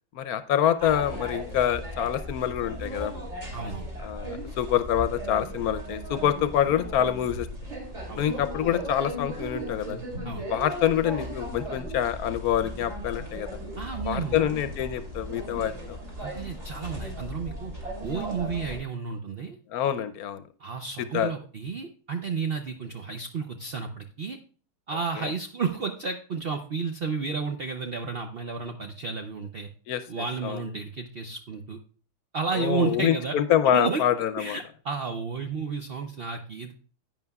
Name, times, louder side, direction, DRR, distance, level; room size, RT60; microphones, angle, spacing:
voice 1, 0.1-3.1 4.0-7.5 8.1-10.0 10.5-13.5 14.0-16.0 19.7-20.4 21.0-21.3 25.2-25.3 29.9-30.0 30.4-30.6 32.5-34.6, left 10 dB, 70° left, 12 dB, 1.1 m, -26 dB
sound 1, 0.8-18.8, equal, 45° right, 3.2 m, -37 dB
voice 2, 3.5-3.9 8.1-8.4 10.2-10.4 13.8-14.4 16.2-17.7 18.0-19.6 20.6-24.4 24.9-29.7 30.1-31.8 32.3-33.4 33.7-34.0 34.4-36.7, right 5 dB, 60° right, 5 dB, 0.6 m, -32 dB
11.0 x 8.9 x 2.3 m, 0.42 s
omnidirectional pair, 1.7 m